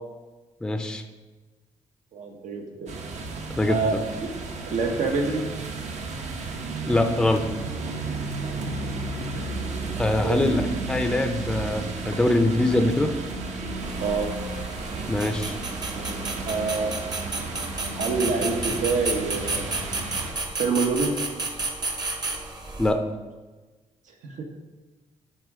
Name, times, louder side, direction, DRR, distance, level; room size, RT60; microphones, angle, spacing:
voice 1, 0.6-1.0 3.5-3.8 6.9-7.4 10.0-10.6 10.9-13.2 15.1-15.6 22.8-23.0, left 1 dB, 5° left, 6 dB, 0.5 m, -23 dB
voice 2, 2.1-2.9 3.7-4.0 4.2-4.3 4.7-5.4 9.3-9.5 10.2-10.6 14.0-14.3 15.9-16.2 16.5-16.9 18.0-19.7 20.6-21.2 24.2-24.4, right 4 dB, 80° right, 3 dB, 1.2 m, -26 dB
sound 1, 2.9-20.3, right 3 dB, 65° right, 1.0 m, -33 dB
sound 2, 13.8-22.9, right 3 dB, 30° right, 0.9 m, -32 dB
10.5 x 3.7 x 4.8 m, 1.2 s
cardioid pair, 135°, 13 cm